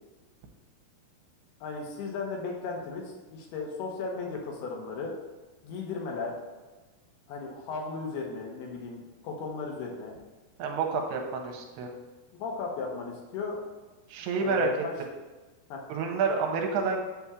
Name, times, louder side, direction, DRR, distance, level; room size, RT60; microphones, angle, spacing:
voice 1, 1.6-5.1 5.6-6.4 7.3-10.1 12.3-13.6 14.4-14.9 15.7-15.8, left 4 dB, 75° left, 0 dB, 2.8 m, -35 dB
voice 2, 10.6-11.9 14.1-14.7 15.9-17.0, right 5 dB, 85° right, 3 dB, 2.7 m, -29 dB
8.3 x 7.0 x 2.4 m, 1.2 s
omnidirectional pair, 4.8 m